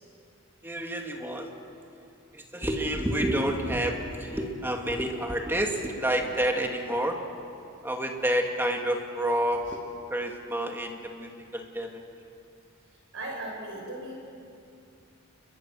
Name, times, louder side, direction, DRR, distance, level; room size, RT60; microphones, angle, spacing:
voice 1, 0.6-1.5 2.3-7.2 7.8-9.8 10.1-12.0, right 1 dB, 10° right, 2 dB, 2.0 m, -29 dB
voice 2, 13.1-14.1, right 1 dB, 70° right, 0 dB, 6.4 m, -37 dB
29.0 x 22.5 x 6.3 m, 2.5 s
head